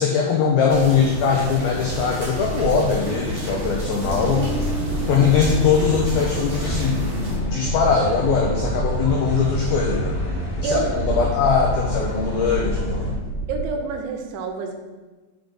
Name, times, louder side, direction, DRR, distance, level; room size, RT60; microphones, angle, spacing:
voice 1, 0.0-4.5 5.1-7.1 7.5-10.2 10.6-13.1, left 6 dB, 85° left, 0 dB, 2.1 m, -21 dB
sound 1, 0.7-7.4, right 1 dB, 40° right, 2.2 m, -30 dB
Train, 1.5-13.7, right 3 dB, 55° right, 2.1 m, -34 dB
sound 2, 4.0-13.1, left 1 dB, 25° left, 1.4 m, -27 dB
voice 2, 13.5-14.8, right 3 dB, 90° right, 4 dB, 3.2 m, -27 dB
6.8 x 5.2 x 6.2 m, 1.2 s
omnidirectional pair, 5.4 m